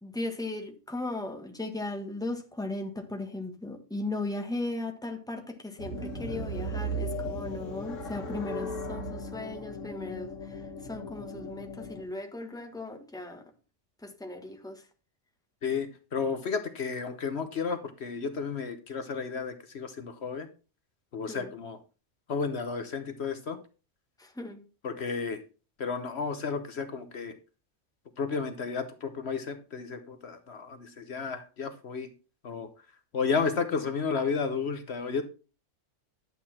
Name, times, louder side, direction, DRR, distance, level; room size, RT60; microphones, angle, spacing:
voice 1, 0.0-13.5 14.0-14.9 21.3-21.5 24.2-24.6, left 2 dB, 5° left, 1.4 m, -37 dB
sound 1, 5.8-12.0, equal, 80° left, 1.7 m, -37 dB
voice 2, 15.6-20.5 21.1-21.8 22.3-23.6 24.8-25.4 25.8-27.3 28.2-32.1 32.4-32.7 33.1-35.2, left 5 dB, 60° left, 1.2 m, -32 dB
11.0 x 8.1 x 4.3 m
omnidirectional pair, 1.3 m